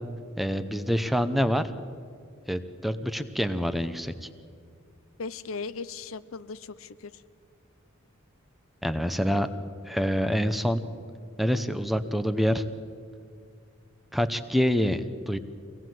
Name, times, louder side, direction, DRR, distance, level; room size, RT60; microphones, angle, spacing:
voice 1, 0.4-1.6 2.5-4.1 8.8-9.5 9.9-10.8 11.4-12.6 14.1-15.4, equal, ahead, 10 dB, 0.8 m, -26 dB
voice 2, 5.2-7.2, left 4 dB, 70° left, 14 dB, 0.6 m, -37 dB
24.5 x 18.0 x 7.7 m, 2.2 s
head